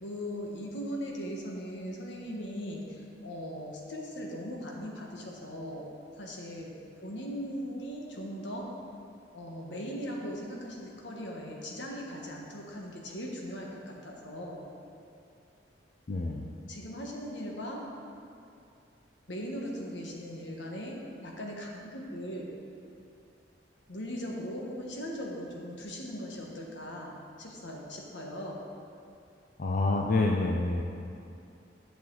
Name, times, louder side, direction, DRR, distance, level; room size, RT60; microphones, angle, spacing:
voice 1, 0.0-5.9 6.2-6.7 7.0-8.7 9.3-14.6 16.7-17.8 19.3-22.5 23.9-28.6, equal, 80° left, -1 dB, 1.4 m, -39 dB
voice 2, 16.1-16.4 29.6-30.8, left 2 dB, 45° left, 0 dB, 0.5 m, -27 dB
10.5 x 7.0 x 4.0 m, 2.5 s
head